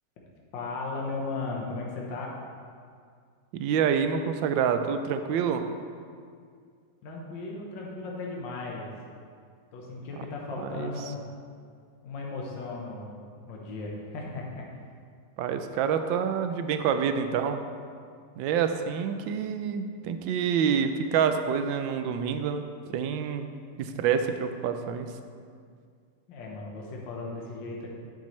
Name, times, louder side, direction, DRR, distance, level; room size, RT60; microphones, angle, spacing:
voice 1, 0.5-2.3 7.0-8.9 9.7-11.2 12.0-13.2 13.5-14.7 26.3-27.9, left 3 dB, 80° left, -2 dB, 1.7 m, -36 dB
voice 2, 3.5-5.6 10.6-10.9 15.4-17.6 18.4-23.5 23.8-25.1, right 7 dB, 90° right, 8 dB, 1.3 m, -27 dB
9.0 x 7.3 x 3.1 m, 2.2 s
omnidirectional pair, 2.0 m